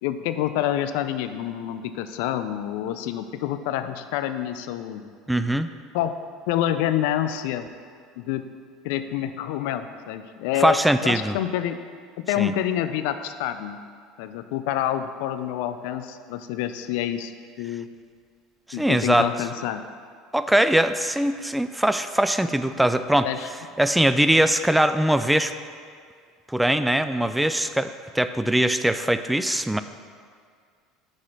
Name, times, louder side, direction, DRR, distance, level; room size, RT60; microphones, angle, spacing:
voice 1, 0.0-5.1 5.9-6.2 6.5-7.7 8.2-8.5 8.8-10.8 11.0-11.8 12.2-13.8 14.2-17.3 17.6-17.9 18.7-19.8 23.2-23.5, left 11 dB, 70° left, 10 dB, 0.4 m, -27 dB
voice 2, 5.3-5.7 10.6-11.4 12.4-12.5 18.7-19.3 20.3-23.3 23.8-25.5 26.5-29.8, right 1 dB, 5° right, 11 dB, 0.3 m, -21 dB
6.1 x 4.9 x 5.7 m, 2.1 s
hypercardioid pair, 80°, 0 cm